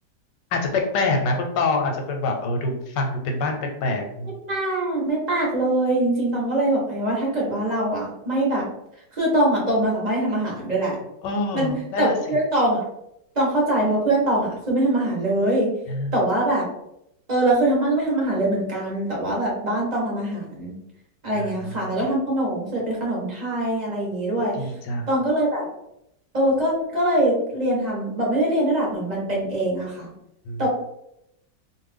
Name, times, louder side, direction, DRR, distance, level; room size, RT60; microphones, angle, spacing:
voice 1, 0.5-4.3 11.2-12.4 15.9-16.1 21.4-21.5 24.4-25.1 30.5-30.6, left 3 dB, 85° left, 3 dB, 1.3 m, -26 dB
voice 2, 4.5-8.6 9.1-11.0 11.5-12.8 13.4-15.7 16.1-16.6 17.3-20.7 21.2-24.5 25.1-25.7 26.3-30.1 30.6-30.7, right 1 dB, 40° right, -4 dB, 0.6 m, -23 dB
2.6 x 2.4 x 3.3 m, 0.80 s
omnidirectional pair, 1.9 m